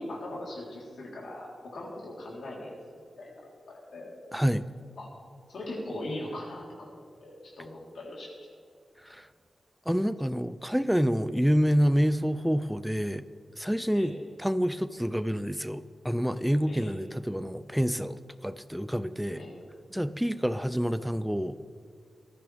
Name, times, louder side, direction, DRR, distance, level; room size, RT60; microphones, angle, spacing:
voice 1, 0.0-4.1 5.0-5.1 5.5-6.9 7.2-8.5 13.9-14.1 16.7-17.0 19.3-19.6, left 1 dB, 70° left, -4 dB, 3.7 m, -40 dB
voice 2, 4.3-4.7 9.0-9.3 9.9-13.2 13.6-19.4 19.9-21.6, equal, ahead, 14 dB, 0.4 m, -28 dB
19.5 x 14.0 x 3.5 m, 2.2 s
wide cardioid pair, 170°, 0 cm